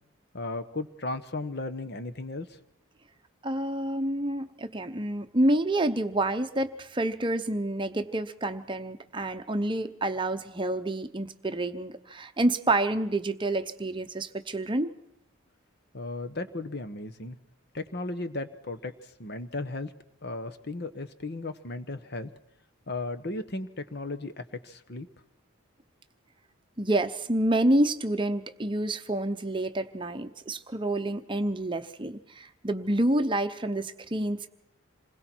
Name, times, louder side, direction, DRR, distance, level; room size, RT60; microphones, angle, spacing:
voice 1, 0.3-2.6 15.9-17.4 17.7-19.9 20.2-22.3 22.9-25.1, left 2 dB, 50° left, 11 dB, 1.1 m, -35 dB
voice 2, 3.4-14.9 26.8-34.5, right 1 dB, 25° right, 8 dB, 0.8 m, -28 dB
27.5 x 21.0 x 4.5 m, 0.80 s
head